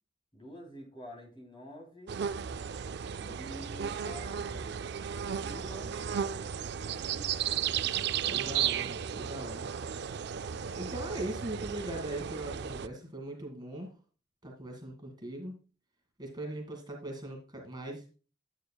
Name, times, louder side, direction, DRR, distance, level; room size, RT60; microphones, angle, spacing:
voice 1, 0.3-2.2 3.2-4.8 5.4-6.0 6.9-7.7, equal, 30° left, 1 dB, 3.2 m, -48 dB
sound 1, 2.1-12.9, right 8 dB, 60° right, 0.4 m, -34 dB
voice 2, 8.3-9.7 10.7-13.9 14.4-15.5 16.2-18.1, right 1 dB, 25° right, 1 dB, 1.9 m, -40 dB
9.6 x 9.0 x 2.3 m, 0.35 s
head